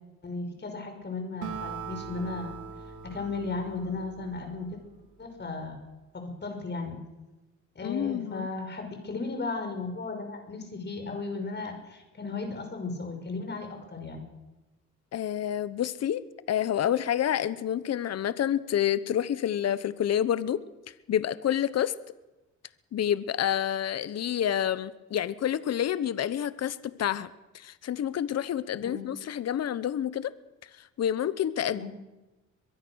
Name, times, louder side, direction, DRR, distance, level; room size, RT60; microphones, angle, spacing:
voice 1, 0.2-2.6 3.0-4.8 5.2-5.8 6.1-7.1 7.8-14.3 28.8-29.1 31.7-31.9, left 3 dB, 35° left, 5 dB, 5.8 m, -35 dB
Acoustic guitar, 1.4-5.0, right 7 dB, 80° right, 2.8 m, -41 dB
voice 2, 7.8-8.5 15.1-16.2 16.5-20.6 21.1-21.9 22.9-30.3 30.8-31.8, left 10 dB, 55° left, 15 dB, 1.0 m, -28 dB
22.5 x 22.5 x 6.4 m, 1.1 s
cardioid pair, 90°, 30 cm